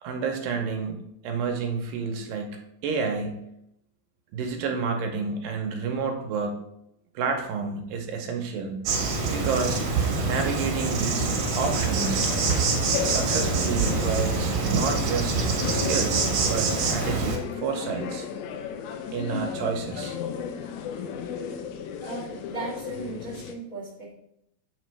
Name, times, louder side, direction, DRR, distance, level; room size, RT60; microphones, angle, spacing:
voice 1, 0.0-3.4 4.3-6.6 7.2-8.8 9.3-9.8 10.3-11.3 11.6-12.2 13.0-18.3 19.1-20.2, right 5 dB, 80° right, 3 dB, 2.4 m, -30 dB
Insect, 8.9-17.4, right 4 dB, 60° right, 2.0 m, -25 dB
sound 1, 11.2-23.5, left 7 dB, 85° left, 2.4 m, -35 dB
voice 2, 22.0-24.1, right 3 dB, 40° left, -4 dB, 1.2 m, -37 dB
8.0 x 4.3 x 3.2 m, 0.78 s
omnidirectional pair, 4.1 m